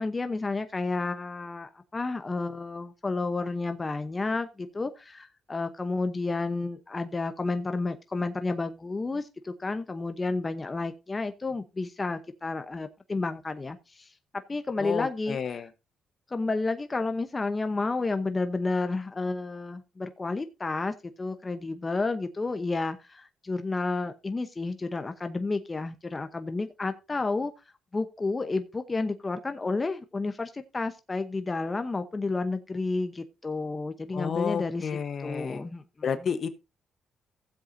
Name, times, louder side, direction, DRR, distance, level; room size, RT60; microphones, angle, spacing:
voice 1, 0.0-14.1 14.5-15.4 16.3-27.5 27.9-34.9 35.2-35.8, left 3 dB, 25° left, 0.9 m, -31 dB
voice 2, 14.8-15.7 34.1-35.6 36.0-36.5, left 7 dB, 55° left, 1.1 m, -31 dB
16.0 x 7.7 x 2.7 m
cardioid pair, 90°, 0 cm